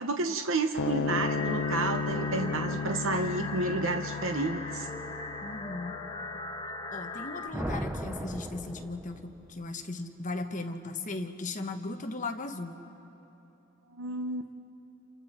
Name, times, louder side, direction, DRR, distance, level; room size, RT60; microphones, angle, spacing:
voice 1, 0.0-4.9 13.9-14.5, right 3 dB, 75° right, 5 dB, 0.9 m, -31 dB
sound 1, 0.8-7.4, left 5 dB, 85° left, 0.8 m, -35 dB
sound 2, 1.2-7.5, left 3 dB, 25° left, 2.0 m, -39 dB
voice 2, 5.4-6.0 6.9-12.8, left 2 dB, 40° left, 5 dB, 1.2 m, -37 dB
sound 3, 7.5-9.5, equal, 10° right, 0.8 m, -36 dB
29.0 x 28.0 x 4.3 m, 2.9 s
head